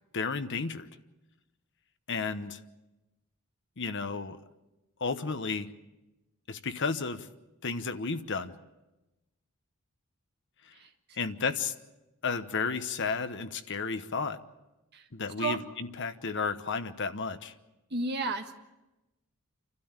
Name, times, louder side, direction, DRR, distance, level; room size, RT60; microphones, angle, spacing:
voice 1, 0.1-0.9 2.1-2.6 3.8-4.4 5.0-5.7 6.5-7.3 7.6-8.5 11.2-11.7 12.2-14.4 15.1-17.5, left 4 dB, 55° left, 10 dB, 1.1 m, -32 dB
voice 2, 10.7-11.2 14.9-15.1 15.4-15.6 17.9-18.5, right 3 dB, 50° right, 5 dB, 1.7 m, -33 dB
28.5 x 12.5 x 8.9 m, 1.0 s
head